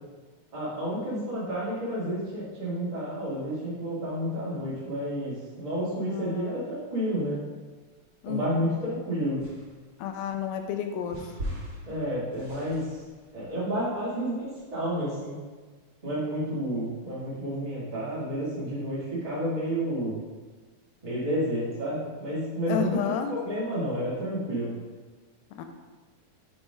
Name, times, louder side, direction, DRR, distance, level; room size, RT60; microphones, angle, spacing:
voice 1, 0.5-7.4 8.3-9.4 11.8-13.0 13.3-15.4 16.0-20.2 21.0-23.0 23.3-24.7, equal, 85° right, -9 dB, 0.3 m, -30 dB
voice 2, 6.1-6.6 8.2-8.5 10.0-11.2 22.7-23.3 25.6-25.7, left 7 dB, 80° left, 6 dB, 2.2 m, -31 dB
sound 1, 8.0-8.8 9.4-14.7, equal, 50° right, 1.3 m, -41 dB
5.3 x 5.0 x 4.9 m, 1.4 s
omnidirectional pair, 4.3 m